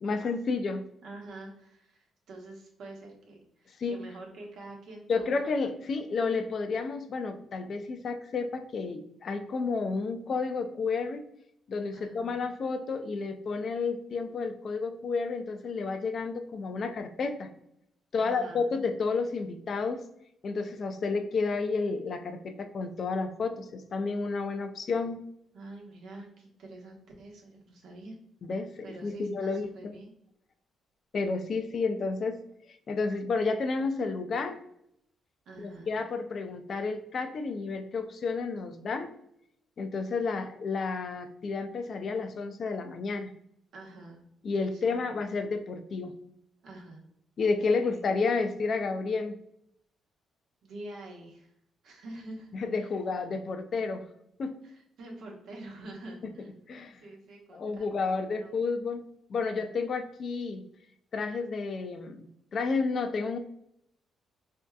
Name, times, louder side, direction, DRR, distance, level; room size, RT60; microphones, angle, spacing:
voice 1, 0.0-0.8 3.8-4.0 5.1-11.2 11.7-17.5 18.1-20.0 20.4-25.2 28.4-28.7 29.0-29.7 31.1-32.4 32.9-34.6 35.6-39.1 39.8-43.3 44.4-46.1 47.4-49.4 52.5-54.1 54.4-54.6 56.7-57.0 57.5-59.0 59.3-60.6 61.1-62.3 62.5-63.4, left 4 dB, 50° left, 8 dB, 0.4 m, -31 dB
voice 2, 1.0-5.4 11.9-12.4 18.2-18.7 25.5-28.2 28.8-30.1 35.5-35.9 43.7-44.2 44.7-45.2 46.6-47.0 47.7-48.1 50.6-51.5 51.8-52.5 52.8-52.9 54.6-56.7 57.0-58.6, right 2 dB, 75° right, 0 dB, 0.9 m, -46 dB
3.3 x 2.7 x 2.2 m, 0.73 s
cardioid pair, 90°, 0 cm